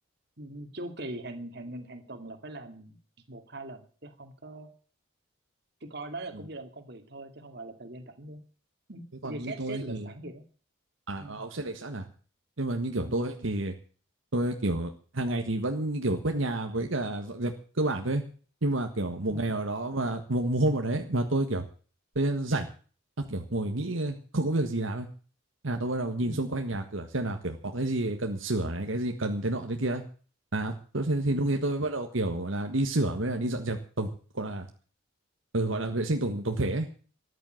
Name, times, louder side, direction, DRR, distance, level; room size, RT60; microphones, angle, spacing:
voice 1, 0.4-3.0 3.3-4.7 5.8-8.4 8.9-10.4 11.2-11.4 12.9-13.3 19.3-19.6 26.2-26.5 31.3-31.7, right 1 dB, 55° right, 7 dB, 2.5 m, -41 dB
voice 2, 9.2-10.1 11.1-12.1 12.6-13.7 14.3-18.2 18.6-21.6 22.1-22.7 23.2-25.1 25.6-30.0 30.5-34.7 35.5-36.9, right 2 dB, 75° right, 4 dB, 1.6 m, -29 dB
14.0 x 10.5 x 7.7 m, 0.41 s
head